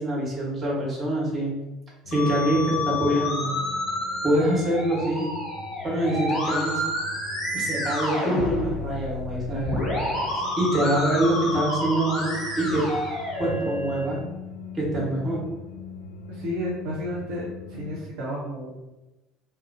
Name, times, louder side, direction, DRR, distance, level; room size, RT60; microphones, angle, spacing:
voice 1, 0.0-1.6 2.1-3.5 4.2-5.3 5.8-6.8 7.5-9.8 10.6-12.8 13.4-14.2 14.7-15.4, right 1 dB, 20° right, -4 dB, 1.0 m, -25 dB
sound 1, 2.0-18.0, left 3 dB, 70° left, 0.3 m, -42 dB
Musical instrument, 2.1-14.1, left 1 dB, 40° left, 1.1 m, -29 dB
voice 2, 16.3-18.9, equal, 60° right, -5 dB, 0.5 m, -32 dB
2.4 x 2.2 x 2.5 m, 1.0 s
figure-of-eight pair, 65°, 0 cm